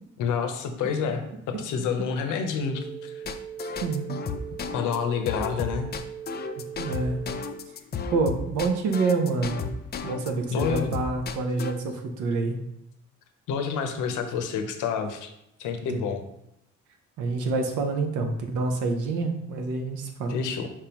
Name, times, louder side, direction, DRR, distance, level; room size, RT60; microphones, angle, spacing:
voice 1, 0.2-3.2 4.7-5.9 10.5-10.9 13.5-15.3 15.6-16.2 20.3-20.7, left 6 dB, 85° left, 6 dB, 0.7 m, -28 dB
sound 1, 2.7-7.7, right 8 dB, 45° right, 0.8 m, -40 dB
sound 2, 3.2-10.3 10.6-11.7, left 6 dB, 35° left, 0.4 m, -33 dB
voice 2, 3.6-4.1 6.6-7.2 8.1-9.6 10.0-12.6 15.9-16.0 17.2-20.4, right 3 dB, 85° right, 4 dB, 0.8 m, -27 dB
4.7 x 3.6 x 2.9 m, 0.79 s
cardioid pair, 90°, 30 cm